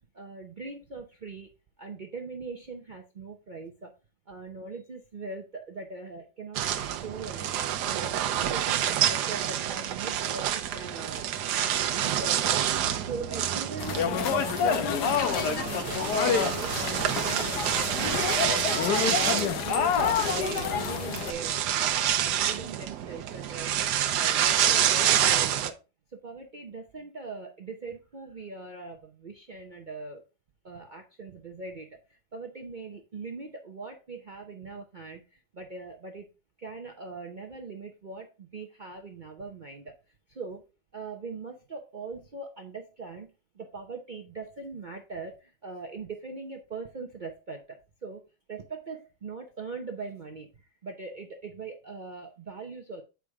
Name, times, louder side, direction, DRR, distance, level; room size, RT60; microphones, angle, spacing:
voice 1, 0.1-1.5 1.8-3.9 4.3-7.5 7.8-11.3 12.0-12.6 13.0-18.3 18.7-21.7 22.1-25.8 26.1-30.2 30.6-36.3 36.6-40.0 40.3-40.6 40.9-48.2 48.5-53.0, right 4 dB, 45° right, 2 dB, 0.6 m, -41 dB
sound 1, 6.5-25.7, right 10 dB, 80° right, 1.2 m, -28 dB
sound 2, 13.8-21.3, left 7 dB, 75° left, 1.4 m, -28 dB
7.8 x 4.9 x 3.5 m, 0.29 s
omnidirectional pair, 1.8 m